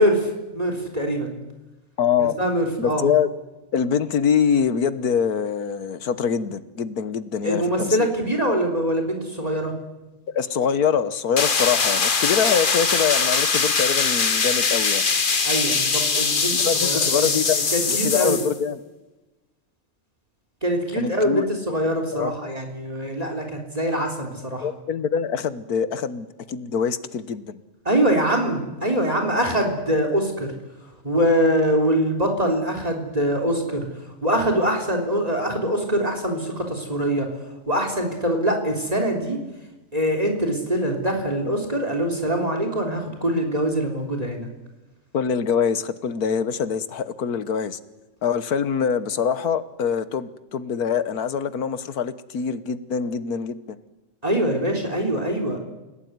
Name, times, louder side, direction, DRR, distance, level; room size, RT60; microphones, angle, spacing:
voice 1, 0.0-1.3 2.2-3.1 7.4-9.7 15.4-18.4 20.6-24.7 27.9-30.5 31.0-33.9 34.2-37.3 37.7-39.4 39.9-44.5 54.2-55.6, equal, 25° right, 4 dB, 3.7 m, -23 dB
voice 2, 2.0-2.3 2.8-3.3 3.7-8.1 10.3-15.0 16.5-17.6 17.9-18.8 21.0-21.4 22.1-22.3 24.6-27.6 45.1-47.8 48.2-53.8, left 7 dB, 85° left, 13 dB, 1.7 m, -24 dB
sound 1, 11.4-18.6, left 5 dB, 35° left, 1.3 m, -22 dB
29.0 x 17.0 x 9.5 m, 1.1 s
omnidirectional pair, 1.6 m